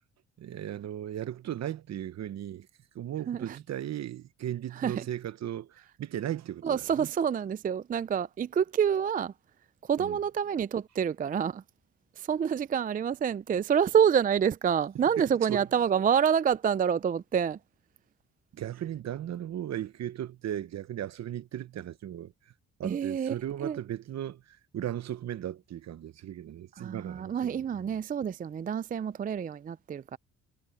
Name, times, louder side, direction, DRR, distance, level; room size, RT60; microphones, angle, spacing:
voice 1, 0.4-2.7 2.9-7.1 10.0-10.2 15.2-15.7 18.5-22.5 22.8-28.0, right 11 dB, 60° right, 1.0 m, -37 dB
voice 2, 6.6-9.3 9.8-11.6 12.2-17.6 22.8-23.3 23.6-23.8 26.8-30.2, right 7 dB, 30° right, 0.4 m, -27 dB
cardioid pair, 90°, 30 cm